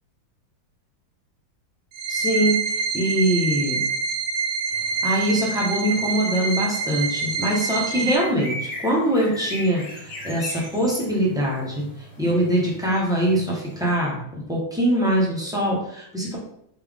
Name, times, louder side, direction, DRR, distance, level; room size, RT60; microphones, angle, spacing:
sound 1, 1.9-8.2, right 5 dB, 90° right, 1.5 m, -26 dB
voice 1, 2.1-2.5 2.9-3.8 5.0-11.8 12.2-14.2 14.5-16.4, equal, 5° right, -5 dB, 0.8 m, -23 dB
sound 2, 4.7-14.0, equal, 70° left, 2.4 m, -39 dB
4.2 x 3.5 x 3.6 m, 0.71 s
omnidirectional pair, 2.1 m